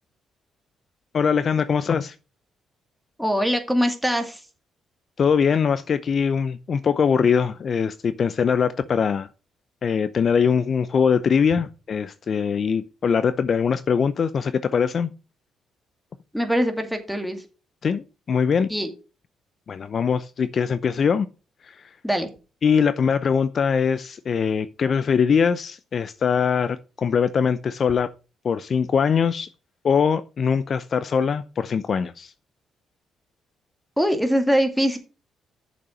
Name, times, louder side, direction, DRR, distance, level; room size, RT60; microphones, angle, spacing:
voice 1, 1.1-2.1 5.2-9.3 9.8-15.1 17.8-18.7 19.7-21.3 21.6-21.8 22.6-28.1 28.4-29.5 29.8-32.3, left 6 dB, 50° left, 0.6 m, -22 dB
voice 2, 3.2-4.4 16.3-17.4 18.7-18.9 22.0-22.3 34.0-35.0, equal, ahead, 2.4 m, -22 dB
8.4 x 7.1 x 5.0 m
cardioid pair, 90°, 0 cm